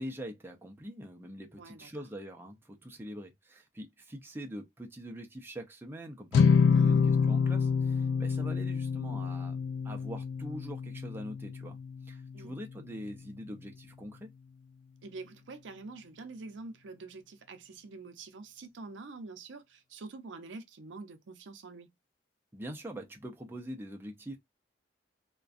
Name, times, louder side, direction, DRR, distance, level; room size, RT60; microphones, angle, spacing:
voice 1, 0.0-9.6 9.8-11.8 12.1-14.3 22.5-24.4, equal, 10° right, 0.5 m, -43 dB
voice 2, 1.6-1.9 6.7-7.0 12.3-12.6 15.0-21.9, right 3 dB, 75° right, 0.5 m, -46 dB
sound 1, 6.3-12.8, left 5 dB, 85° left, 0.3 m, -27 dB
2.4 x 2.2 x 2.4 m
head